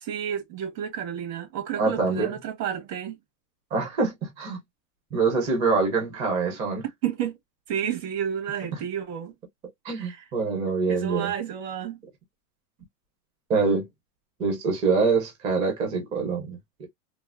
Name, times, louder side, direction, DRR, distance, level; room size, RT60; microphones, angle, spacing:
voice 1, 0.0-3.2 7.0-7.4 7.7-9.3 9.9-10.3 10.9-12.0, right 9 dB, 85° right, 1.5 m, -31 dB
voice 2, 1.8-2.4 3.7-4.6 5.1-6.8 8.7-8.8 9.8-11.3 13.5-13.9 14.4-16.9, right 4 dB, 15° right, 0.4 m, -25 dB
3.3 x 2.1 x 2.4 m
supercardioid pair, 160°, 47 cm